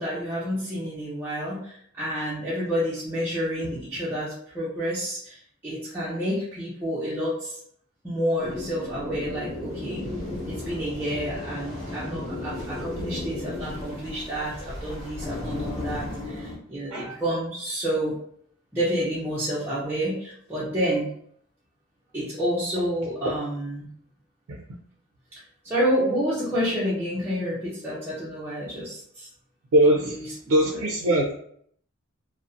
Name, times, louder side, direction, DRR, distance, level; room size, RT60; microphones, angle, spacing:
voice 1, 0.0-7.6 8.0-10.0 10.5-18.1 18.7-21.1 22.1-23.9 25.3-29.3 30.1-30.2, equal, 10° right, -10 dB, 0.5 m, -29 dB
sound 1, 8.4-16.6, left 2 dB, 25° left, 1.0 m, -34 dB
voice 2, 29.7-31.3, right 1 dB, 75° right, -1 dB, 0.4 m, -22 dB
2.5 x 2.0 x 2.5 m, 0.65 s
head